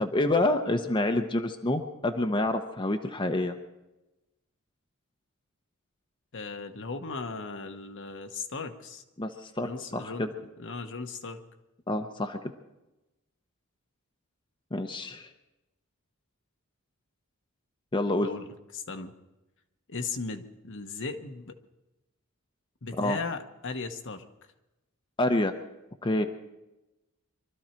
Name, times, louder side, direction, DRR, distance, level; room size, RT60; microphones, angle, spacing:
voice 1, 0.0-3.5 9.2-10.3 11.9-12.4 14.7-15.3 17.9-18.3 23.0-23.2 25.2-25.5 26.0-26.3, left 2 dB, 20° left, 6 dB, 0.8 m, -27 dB
voice 2, 6.3-9.0 9.6-10.3 10.6-11.4 18.2-19.1 19.9-21.6 22.8-24.2, left 4 dB, 60° left, 6 dB, 1.1 m, -37 dB
23.5 x 13.0 x 4.5 m, 1.0 s
head